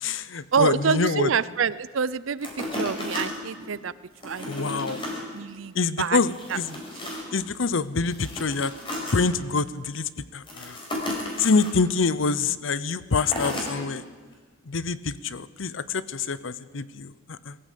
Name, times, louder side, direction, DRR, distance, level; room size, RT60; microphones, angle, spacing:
voice 1, 0.0-1.3 4.5-5.0 5.7-6.8 7.3-8.7 9.1-10.8 11.4-14.0 14.7-17.6, left 4 dB, 75° left, 16 dB, 0.8 m, -26 dB
voice 2, 0.5-3.9 4.2-4.8 5.3-6.2 6.5-6.6, right 6 dB, 75° right, 18 dB, 0.6 m, -27 dB
sound 1, 2.4-3.7 4.2-5.2 5.6-5.7 6.1-7.4 8.0-9.2 10.4-11.7 13.2-13.7 14.3-14.4, left 1 dB, 25° left, 4.9 m, -33 dB
21.5 x 15.0 x 8.5 m, 1.4 s
head